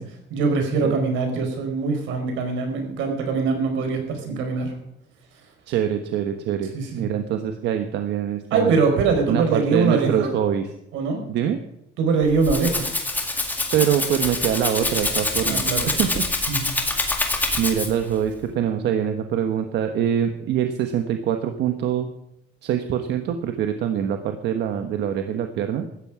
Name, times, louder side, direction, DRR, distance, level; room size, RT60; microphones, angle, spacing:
voice 1, 0.3-4.7 6.7-7.1 8.5-10.3 10.9-11.2 12.0-12.9 15.5-16.1 16.5-16.7, right 4 dB, 85° right, 5 dB, 4.8 m, -23 dB
voice 2, 5.7-8.8 9.3-10.7 11.3-11.6 13.7-16.2 17.6-22.1 22.6-25.9, right 9 dB, 65° right, 6 dB, 1.3 m, -24 dB
Rattle (instrument), 12.2-18.1, left 2 dB, 10° left, 2.0 m, -25 dB
17.0 x 13.5 x 4.9 m, 0.82 s
cardioid pair, 180°, 19 cm